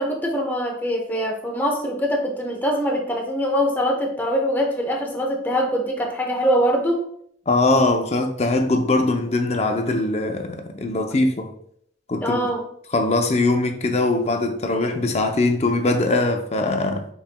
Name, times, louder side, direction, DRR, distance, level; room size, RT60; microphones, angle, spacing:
voice 1, 0.0-7.1 12.2-12.7, equal, 10° left, 0.9 m, -23 dB
voice 2, 7.5-11.5 12.1-12.5 12.9-17.0, left 2 dB, 40° left, 0.6 m, -21 dB
5.6 x 4.1 x 2.3 m
head